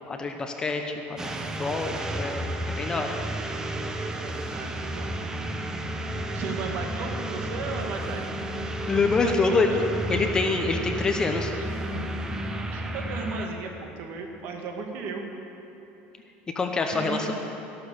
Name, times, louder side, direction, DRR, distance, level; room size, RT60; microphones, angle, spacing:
voice 1, 0.1-2.4 2.8-3.2 8.9-9.8 10.1-11.5 16.5-17.3, left 3 dB, 15° left, 4 dB, 0.9 m, -26 dB
sound 1, 1.2-13.5, right 1 dB, 15° right, 0.8 m, -32 dB
voice 2, 4.1-5.2 6.3-8.3 9.2-9.8 11.5-11.7 12.4-15.2 16.9-17.3, right 4 dB, 50° right, 3 dB, 1.9 m, -36 dB
13.5 x 11.5 x 6.8 m, 2.9 s
cardioid pair, 155°, 4 cm